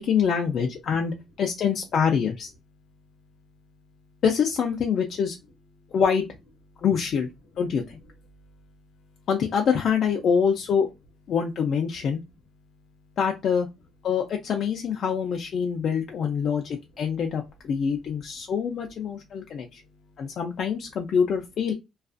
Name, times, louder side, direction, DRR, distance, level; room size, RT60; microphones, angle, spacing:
voice 1, 0.0-2.5 4.2-5.4 5.9-6.3 6.8-7.3 7.6-8.0 9.3-10.9 11.3-12.2 13.2-13.7 14.0-19.8 20.2-21.7, left 7 dB, 65° left, 2 dB, 0.4 m, -25 dB
voice 2, 2.8-4.2 5.7-5.9 6.7-6.8 8.3-9.3 12.6-13.2 15.6-15.8 16.4-16.9 18.0-18.1 19.0-20.4, left 2 dB, 80° left, 4 dB, 0.7 m, -58 dB
2.4 x 2.3 x 2.4 m, 0.23 s
supercardioid pair, 70°, 0 cm